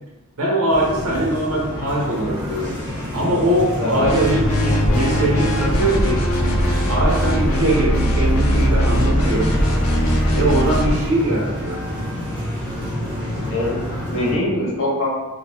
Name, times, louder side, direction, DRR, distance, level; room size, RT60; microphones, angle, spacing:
voice 1, 0.4-2.8 3.1-6.2 6.9-9.6 10.3-11.9, right 1 dB, 85° right, -3 dB, 0.9 m, -21 dB
sound 1, 0.7-14.4, equal, 20° right, 1.2 m, -29 dB
sound 2, 4.0-11.1, equal, 75° left, 0.6 m, -19 dB
voice 2, 13.5-15.1, left 1 dB, 60° left, -5 dB, 1.2 m, -23 dB
3.6 x 2.4 x 2.9 m, 1.0 s
head